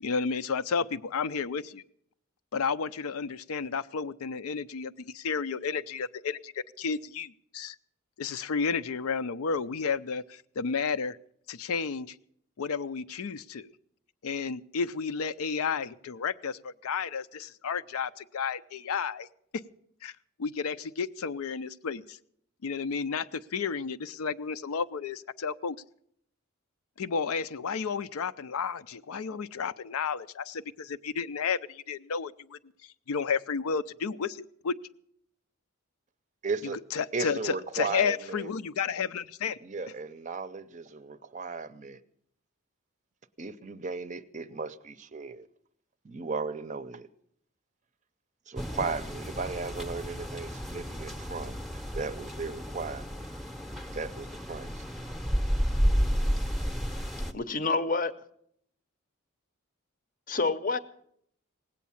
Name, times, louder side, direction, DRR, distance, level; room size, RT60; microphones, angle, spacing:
voice 1, 0.0-1.8 2.5-7.8 8.2-11.2 11.5-12.2 12.6-13.7 14.2-19.3 20.0-20.1 20.4-22.2 22.6-25.8 27.0-32.6 33.1-34.8 36.9-39.6, left 5 dB, 85° left, 13 dB, 0.5 m, -32 dB
voice 2, 36.4-36.8 37.1-38.5 39.6-42.0 43.4-45.5 46.0-47.1 48.5-53.3 53.9-54.8, right 4 dB, 35° right, 13 dB, 0.5 m, -36 dB
sound 1, 48.6-57.3, equal, ahead, 0.7 m, -31 dB
voice 3, 57.3-58.1 60.3-60.8, left 3 dB, 40° left, 13 dB, 0.7 m, -27 dB
18.0 x 8.4 x 7.1 m, 0.69 s
head